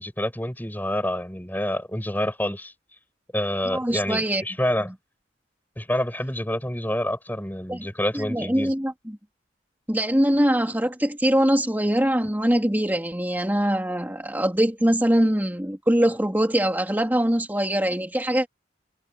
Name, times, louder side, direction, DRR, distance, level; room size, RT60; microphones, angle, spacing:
voice 1, 0.0-2.7 3.3-4.9 5.8-8.7, left 1 dB, 10° left, 7.3 m, -27 dB
voice 2, 3.6-4.4 7.7-7.8 8.1-9.2 9.9-18.5, equal, 10° right, 2.9 m, -23 dB
head